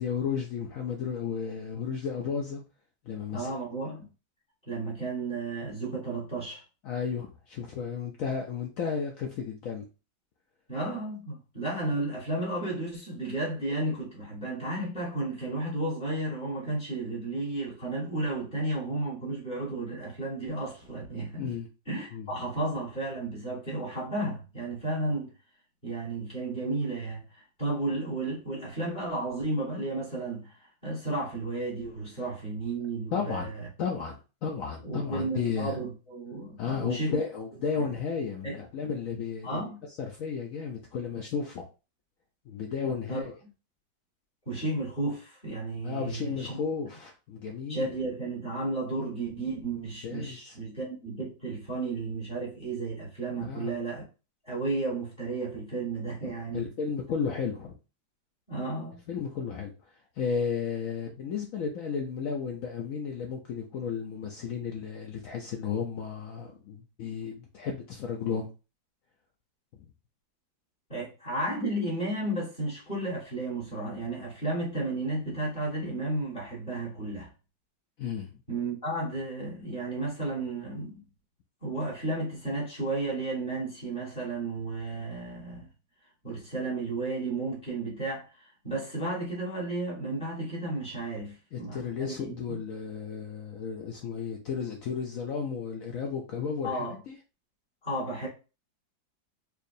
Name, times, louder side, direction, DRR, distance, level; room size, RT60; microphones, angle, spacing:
voice 1, 0.0-2.6 3.0-3.5 6.8-9.9 21.4-21.7 22.1-22.3 33.1-33.5 33.8-35.8 36.6-39.6 40.0-41.7 42.5-43.3 45.8-47.9 50.0-50.6 53.4-53.7 56.2-57.7 59.1-68.5 78.0-78.4 91.5-97.2, left 6 dB, 80° left, 0.7 m, -33 dB
voice 2, 3.3-4.1 4.7-6.6 10.7-21.5 21.9-25.3 25.8-33.5 34.8-37.2 37.8-37.9 38.4-38.6 39.4-39.8 43.1-43.2 44.5-46.6 47.7-54.0 54.4-56.7 58.5-59.0 70.9-77.3 78.5-81.0 81.6-85.7 86.2-92.6 96.6-96.9 97.8-98.3, right 2 dB, 25° left, 1.7 m, -33 dB
4.6 x 2.5 x 2.6 m
omnidirectional pair, 2.0 m